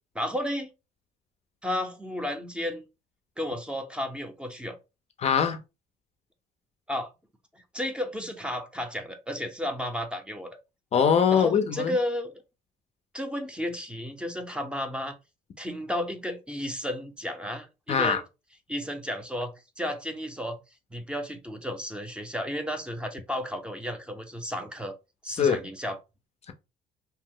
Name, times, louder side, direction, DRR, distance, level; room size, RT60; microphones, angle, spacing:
voice 1, 0.2-0.7 1.6-2.8 3.4-4.8 6.9-7.1 7.5-10.6 11.3-12.4 13.1-15.2 15.6-18.2 18.7-20.6 20.9-24.9 25.2-26.0, left 1 dB, 5° right, 0.6 m, -33 dB
voice 2, 5.2-5.6 10.9-11.9 17.9-18.2 25.3-25.6, left 7 dB, 40° left, 0.4 m, -22 dB
2.7 x 2.0 x 3.6 m
cardioid pair, 110°, 17 cm